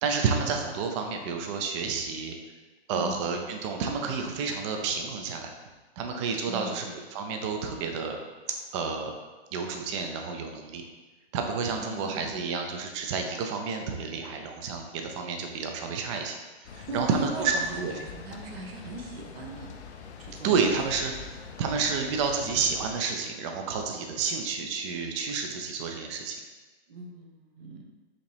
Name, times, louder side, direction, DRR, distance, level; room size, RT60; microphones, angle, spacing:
voice 1, 0.0-2.3 2.9-5.5 6.0-8.2 8.7-9.1 9.5-10.8 11.3-16.4 16.7-17.9 20.4-21.1 21.6-26.4, right 5 dB, 30° right, 3 dB, 0.5 m, -30 dB
voice 2, 2.9-3.2 6.5-6.8 11.7-12.4 16.9-19.7 20.2-20.7 21.7-21.9 26.9-27.8, right 3 dB, 65° right, 1 dB, 0.9 m, -39 dB
sound 1, 16.6-23.0, left 6 dB, 85° left, 0.6 m, -44 dB
4.9 x 2.8 x 3.3 m, 1.2 s
hypercardioid pair, 135°, 32 cm